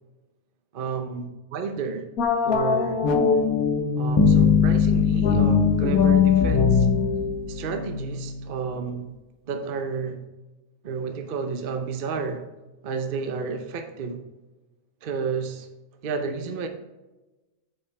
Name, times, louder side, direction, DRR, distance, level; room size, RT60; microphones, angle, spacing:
voice 1, 0.7-2.1 2.4-3.0 3.9-6.9 7.5-9.1 9.5-10.2 10.8-12.4 12.8-14.2 15.0-15.7 16.0-16.7, right 5 dB, 45° right, 0.8 m, -31 dB
sound 1, 2.2-4.4 5.2-8.5, left 5 dB, 75° left, 1.3 m, -22 dB
sound 2, 4.2-7.6, left 6 dB, 30° left, 0.5 m, -22 dB
8.7 x 5.8 x 3.4 m
omnidirectional pair, 1.5 m